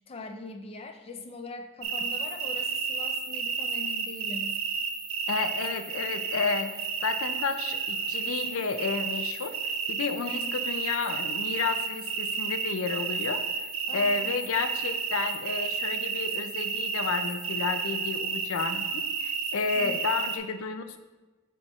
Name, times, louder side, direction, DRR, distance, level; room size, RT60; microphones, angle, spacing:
voice 1, 0.1-4.6 10.2-10.7 13.9-14.5 19.8-20.0, left 2 dB, 30° left, 5 dB, 0.5 m, -42 dB
sound 1, 1.8-20.4, right 5 dB, 70° right, 0.6 m, -32 dB
voice 2, 5.3-6.7 7.0-21.0, left 4 dB, 75° left, 8 dB, 0.5 m, -31 dB
9.4 x 3.4 x 3.0 m, 1.2 s
head